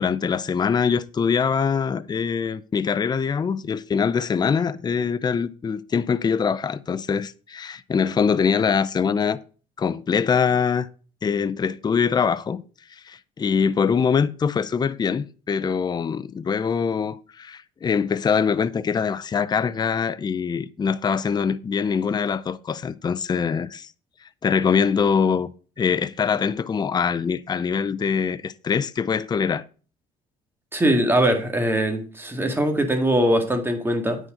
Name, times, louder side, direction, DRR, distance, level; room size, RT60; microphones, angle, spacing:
voice 1, 0.0-9.4 9.8-10.9 11.2-12.6 12.9-23.9 24.4-25.5 25.8-29.6, left 6 dB, 25° left, 0.5 m, -23 dB
voice 2, 30.7-34.2, right 1 dB, 15° right, 2.1 m, -21 dB
9.1 x 6.4 x 5.1 m
cardioid pair, 110°, 17 cm